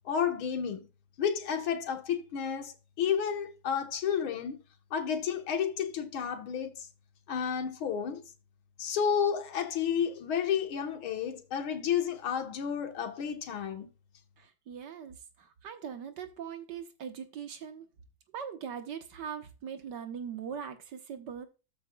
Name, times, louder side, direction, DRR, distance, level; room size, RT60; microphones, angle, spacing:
voice 1, 0.1-0.9 1.2-4.6 4.9-6.9 7.3-8.2 8.8-13.9, left 8 dB, 85° left, 2.1 m, -31 dB
voice 2, 14.4-17.9 18.3-21.5, right 7 dB, 60° right, 1.7 m, -41 dB
14.0 x 6.1 x 2.3 m
omnidirectional pair, 2.3 m